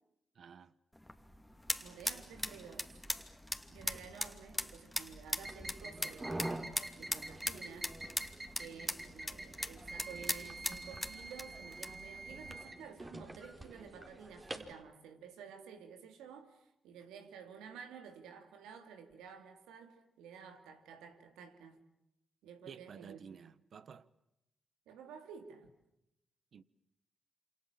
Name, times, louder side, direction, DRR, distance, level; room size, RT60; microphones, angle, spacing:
voice 1, 0.3-0.7 22.7-24.1 26.5-26.6, right 7 dB, 65° right, 1.3 m, -52 dB
sound 1, 0.9-12.6, left 1 dB, 10° left, 2.7 m, -41 dB
voice 2, 1.8-2.9 3.7-6.7 6.9-8.0 8.5-21.8 22.4-23.4 24.9-25.7, right 7 dB, 90° right, 2.8 m, -52 dB
sound 2, 5.4-14.7, right 2 dB, 30° right, 4.2 m, -46 dB
28.0 x 27.5 x 7.4 m
supercardioid pair, 45°, 0 cm